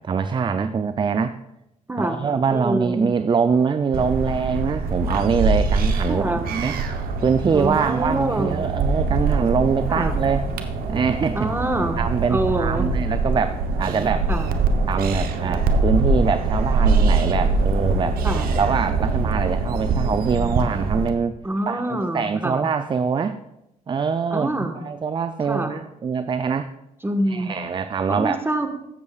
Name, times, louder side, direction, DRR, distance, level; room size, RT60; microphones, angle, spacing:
voice 1, 0.0-1.4 2.0-6.8 7.2-10.5 10.9-11.5 12.0-14.3 14.9-18.2 18.6-21.4 21.7-23.4 23.9-26.7 27.3-28.4, right 5 dB, 30° right, 11 dB, 0.4 m, -23 dB
voice 2, 1.9-3.1 6.1-6.5 7.5-8.7 9.9-10.1 11.3-12.9 14.3-14.5 18.2-18.5 21.4-22.6 24.3-24.8 25.4-25.7 27.0-27.5 28.1-28.7, right 1 dB, 15° right, 6 dB, 1.3 m, -26 dB
sound 1, 3.9-21.1, right 3 dB, 80° right, 0.9 m, -23 dB
14.5 x 7.0 x 2.4 m, 0.87 s
supercardioid pair, 65°, 15 cm